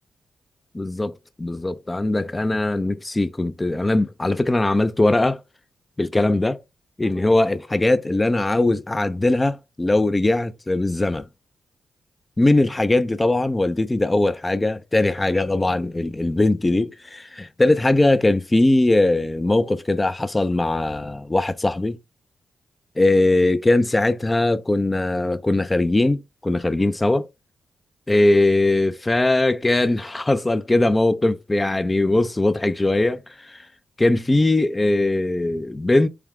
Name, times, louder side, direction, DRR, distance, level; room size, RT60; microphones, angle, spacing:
voice 1, 0.7-5.4 6.0-6.6 7.0-11.3 12.4-22.0 23.0-27.3 28.1-33.6 34.0-36.1, left 2 dB, 25° left, 0.5 m, -20 dB
3.4 x 2.3 x 3.5 m
supercardioid pair, 55°, 0 cm